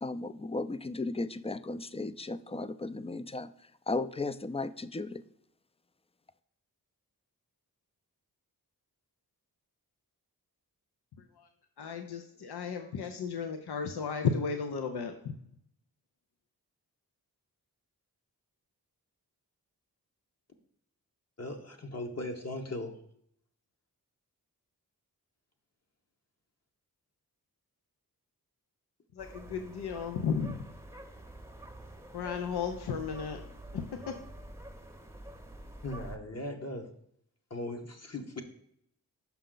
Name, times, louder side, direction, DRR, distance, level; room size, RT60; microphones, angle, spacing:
voice 1, 0.0-3.5 3.9-5.2, left 3 dB, 15° left, 14 dB, 0.3 m, -35 dB
voice 2, 11.8-15.3 29.1-30.6 32.1-33.4 33.7-34.1, left 6 dB, 90° left, 6 dB, 0.6 m, -34 dB
voice 3, 21.4-23.0 35.8-36.9 37.5-38.4, left 1 dB, 40° left, 3 dB, 1.0 m, -38 dB
sound 1, 29.2-36.2, right 1 dB, 5° right, 0.7 m, -47 dB
5.9 x 5.5 x 3.8 m, 0.70 s
cardioid pair, 55°, 38 cm